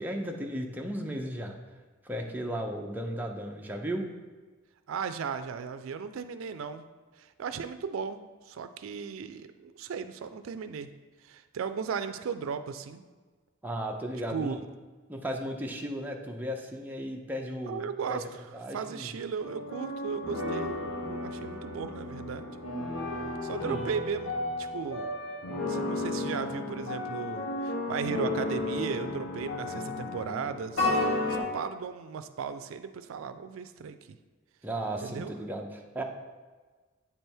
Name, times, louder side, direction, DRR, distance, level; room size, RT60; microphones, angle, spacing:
voice 1, 0.0-1.6 2.0-4.1 13.6-14.6 15.1-17.8 18.1-18.2 18.5-19.1 23.6-23.8 34.6-36.0, equal, 10° right, 1 dB, 0.5 m, -35 dB
voice 2, 4.9-6.8 7.2-8.2 8.5-10.9 11.2-13.0 14.3-14.6 17.7-18.4 18.7-20.8 21.1-22.5 23.4-24.3 24.6-25.1 25.6-31.0 31.3-34.0 35.0-35.3, right 6 dB, 85° right, 10 dB, 0.4 m, -36 dB
sound 1, 19.4-31.4, left 2 dB, 75° left, 1.4 m, -33 dB
8.3 x 3.4 x 4.4 m, 1.4 s
head